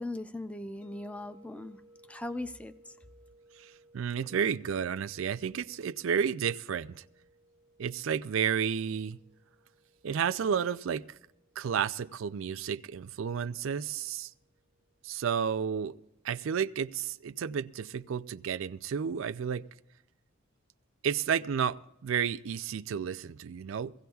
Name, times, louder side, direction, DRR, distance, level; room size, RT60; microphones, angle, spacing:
voice 1, 0.0-1.8 2.1-2.7, left 2 dB, 5° left, 0.4 m, -38 dB
sound 1, 0.8-15.7, right 1 dB, 50° left, 6.0 m, -63 dB
voice 2, 3.6-7.0 7.8-9.2 10.0-11.0 11.6-14.3 15.0-16.0 16.2-19.7 21.0-23.9, right 7 dB, 75° right, 0.4 m, -31 dB
22.0 x 16.0 x 2.3 m
head